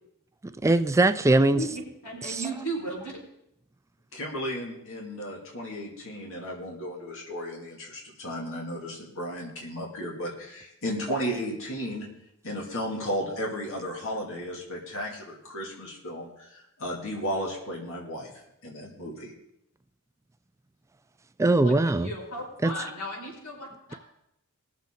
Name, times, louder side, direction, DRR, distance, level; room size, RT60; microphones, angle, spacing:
voice 1, 0.6-1.6 2.2-2.4 21.4-22.1 22.6-22.7, right 2 dB, 15° right, 11 dB, 0.3 m, -21 dB
voice 2, 1.5-3.1 21.6-24.0, right 1 dB, 85° left, -4 dB, 4.9 m, -35 dB
voice 3, 4.1-12.1 12.4-18.3 18.6-19.3, equal, 65° left, -2 dB, 2.5 m, -34 dB
20.5 x 7.4 x 3.8 m, 0.80 s
head